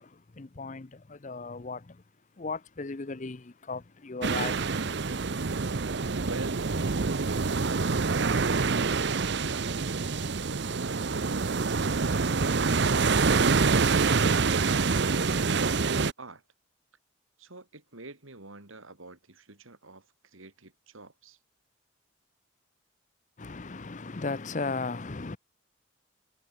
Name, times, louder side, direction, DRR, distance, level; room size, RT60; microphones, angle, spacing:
voice 1, 0.0-2.0 2.4-4.6 5.1-5.5 23.4-25.4, left 3 dB, 35° left, 0.6 m, -36 dB
sound 1, 4.2-16.1, right 4 dB, 55° right, 0.7 m, -26 dB
voice 2, 6.2-6.7 7.5-11.5 17.4-21.4, right 2 dB, 80° right, 3.3 m, -46 dB
head